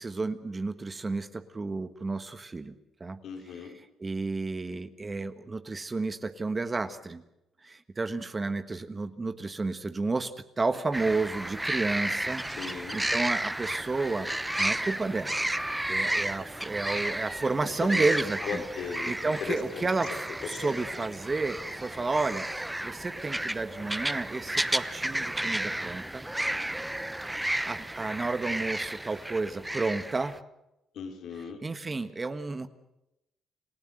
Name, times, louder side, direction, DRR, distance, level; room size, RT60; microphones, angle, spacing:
voice 1, 0.0-2.7 3.0-3.2 3.6-3.7 4.0-7.2 7.6-14.3 14.6-15.3 15.9-18.6 19.1-26.3 27.2-30.3 31.4-32.7, right 3 dB, 25° right, 10 dB, 1.4 m, -31 dB
voice 2, 3.2-3.7 12.6-13.0 17.9-18.1 18.4-19.9 20.4-20.7 30.9-31.6, left 6 dB, 70° left, 3 dB, 4.2 m, -37 dB
sound 1, 10.9-30.4, right 1 dB, 10° right, 0.9 m, -32 dB
29.0 x 15.5 x 7.8 m, 0.89 s
cardioid pair, 90°, 0 cm